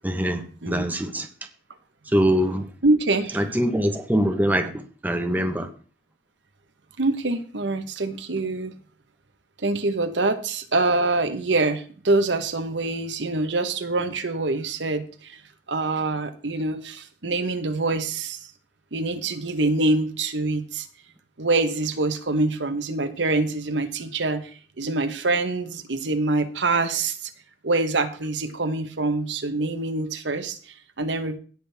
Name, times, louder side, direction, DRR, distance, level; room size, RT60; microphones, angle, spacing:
voice 1, 0.0-1.3 2.1-2.7 3.3-4.7 5.0-5.7, equal, 10° right, 5 dB, 1.0 m, -23 dB
voice 2, 2.8-3.4 7.0-8.8 9.6-15.4 15.7-18.4 18.9-20.9 21.4-24.5 24.8-27.3 27.6-31.4, right 2 dB, 80° right, 9 dB, 1.1 m, -25 dB
17.5 x 6.1 x 3.5 m, 0.40 s
head